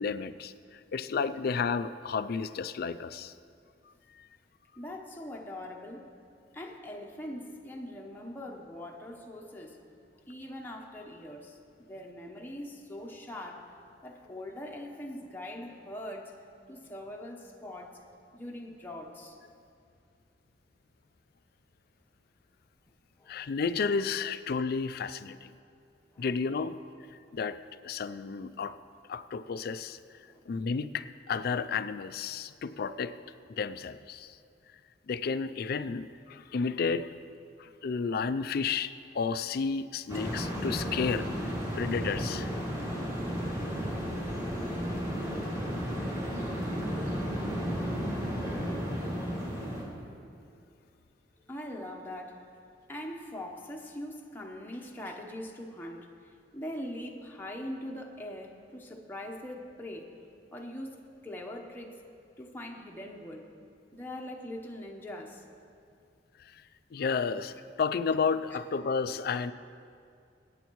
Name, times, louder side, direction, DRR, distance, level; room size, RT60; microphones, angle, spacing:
voice 1, 0.0-3.3 4.2-4.3 23.3-25.5 26.2-26.8 27.3-28.8 29.1-30.0 30.5-33.1 33.5-34.4 35.1-37.1 37.6-42.5 66.4-66.6 66.9-69.5, left 5 dB, 60° left, 13 dB, 0.4 m, -32 dB
voice 2, 4.8-6.2 6.5-9.9 10.3-13.7 14.0-16.4 16.7-18.0 18.3-19.4 23.2-23.4 24.2-24.3 26.1-26.2 30.2-30.4 51.5-52.5 52.9-56.1 56.5-60.1 60.5-62.0 62.4-63.5 63.9-65.4, left 1 dB, 10° left, 0 dB, 0.9 m, -42 dB
sound 1, 40.1-49.8, equal, 20° right, 2.4 m, -33 dB
21.0 x 9.0 x 3.1 m, 2.4 s
head